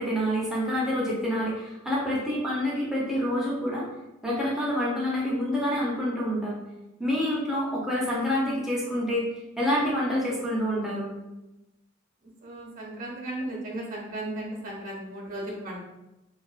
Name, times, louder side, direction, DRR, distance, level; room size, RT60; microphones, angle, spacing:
voice 1, 0.0-3.9 4.2-6.6 7.0-9.2 9.6-11.1, equal, ahead, -6 dB, 0.5 m, -27 dB
voice 2, 12.4-15.8, right 1 dB, 45° right, -2 dB, 0.6 m, -35 dB
2.5 x 2.1 x 2.4 m, 0.97 s
head